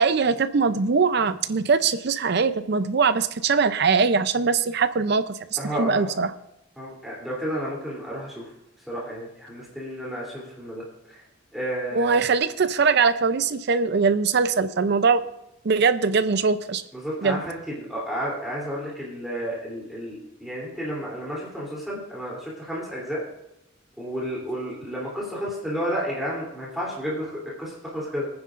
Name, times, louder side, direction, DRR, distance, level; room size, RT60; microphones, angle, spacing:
voice 1, 0.0-6.3 11.9-15.2 15.6-16.8 17.2-17.4, right 5 dB, 55° right, 12 dB, 0.5 m, -22 dB
voice 2, 5.6-6.1 6.8-8.4 8.9-10.8 11.5-12.2 16.9-23.2 24.0-28.3, equal, ahead, -6 dB, 3.1 m, -31 dB
21.5 x 9.6 x 2.5 m, 0.85 s
head